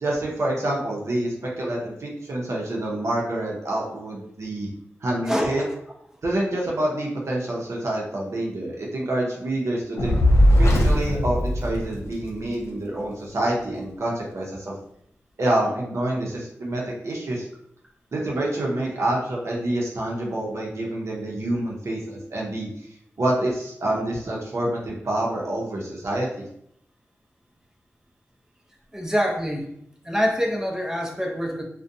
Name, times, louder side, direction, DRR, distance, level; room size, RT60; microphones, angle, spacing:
voice 1, 0.0-4.7 5.0-5.6 6.2-10.2 10.5-14.7 15.4-17.5 18.1-22.9 23.2-26.5, right 1 dB, 65° right, -3 dB, 0.6 m, -27 dB
voice 2, 5.3-5.7 28.9-29.7 30.0-31.6, equal, 10° right, 1 dB, 0.5 m, -25 dB
Fire, 10.0-12.4, equal, 60° left, 0.5 m, -19 dB
2.5 x 2.1 x 2.6 m, 0.73 s
cardioid pair, 50°, 5 cm